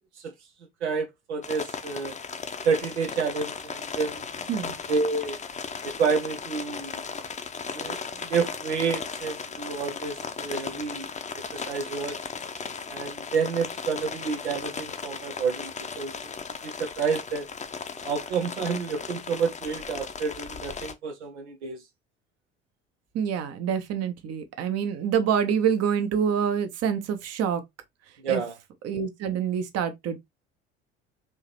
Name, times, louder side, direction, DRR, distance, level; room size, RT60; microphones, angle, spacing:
voice 1, 0.8-2.2 2.6-4.2 4.9-5.4 5.8-6.9 7.7-11.1 11.3-12.2 12.9-16.1 16.6-17.5 18.0-21.8 28.2-28.5, right 5 dB, 80° right, 0.8 m, -29 dB
sound 1, 1.4-20.9, left 5 dB, 20° left, 0.7 m, -36 dB
voice 2, 23.1-27.6 28.3-28.4 28.8-30.2, right 7 dB, 45° right, 1.0 m, -26 dB
4.8 x 2.8 x 3.0 m
figure-of-eight pair, 60°, 33 cm